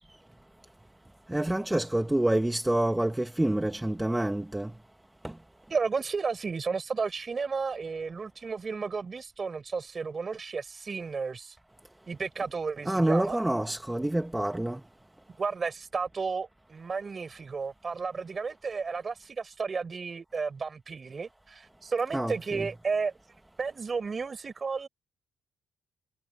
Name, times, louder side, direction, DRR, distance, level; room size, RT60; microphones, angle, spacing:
voice 1, 1.3-4.7 12.9-14.8 22.1-22.7, right 1 dB, 10° right, 1.2 m, -27 dB
voice 2, 5.7-11.6 12.1-13.4 15.4-23.1 23.6-24.9, right 5 dB, 35° right, 5.9 m, -33 dB
cardioid pair, 100°, 0 cm